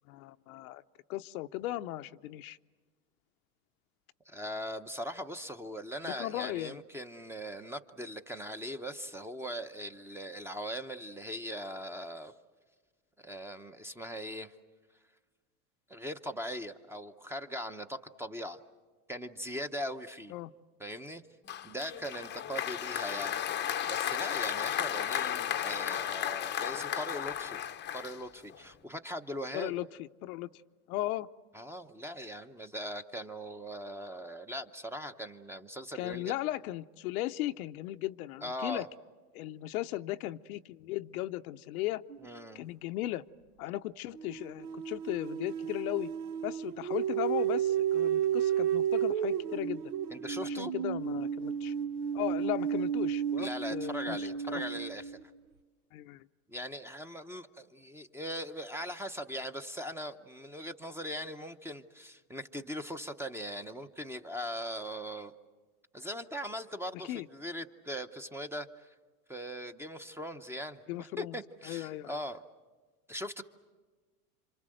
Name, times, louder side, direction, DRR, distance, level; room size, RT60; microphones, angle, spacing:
voice 1, 0.1-0.8 1.1-2.6 6.0-6.8 20.3-20.5 29.5-30.5 30.9-31.3 35.9-38.8 39.3-42.0 42.5-43.2 43.6-46.1 46.4-49.9 50.4-51.7 52.1-54.2 54.5-54.6 55.9-56.3 67.0-67.3 70.9-71.4 71.7-72.2, left 16 dB, 80° left, 10 dB, 0.8 m, -37 dB
voice 2, 4.3-12.3 13.2-14.6 15.9-18.6 19.1-20.3 20.8-21.2 21.6-23.4 23.9-27.6 27.9-29.7 31.5-36.4 38.4-38.9 42.2-42.7 50.1-50.7 53.4-55.2 56.5-65.3 65.9-68.9 69.3-72.4 73.1-73.4, equal, 5° right, 9 dB, 0.8 m, -40 dB
Applause, 21.5-28.6, left 10 dB, 25° left, 0.7 m, -34 dB
sound 1, 42.1-42.3 44.1-55.2, right 9 dB, 85° right, 1.1 m, -32 dB
28.0 x 26.0 x 7.8 m, 1.4 s
supercardioid pair, 120°, 43 cm